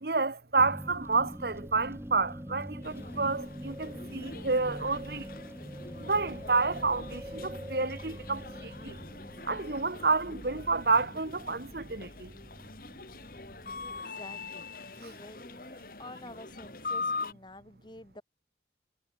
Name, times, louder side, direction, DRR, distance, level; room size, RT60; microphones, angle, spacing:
voice 1, 0.0-5.3 6.0-9.0 9.5-12.3, right 4 dB, 55° right, 1.3 m, -29 dB
sound 1, 0.6-14.0, equal, 15° right, 2.5 m, -44 dB
sound 2, 2.8-17.3, left 4 dB, 50° left, 2.7 m, -43 dB
voice 2, 13.8-18.2, left 1 dB, 25° left, 3.5 m, -49 dB
head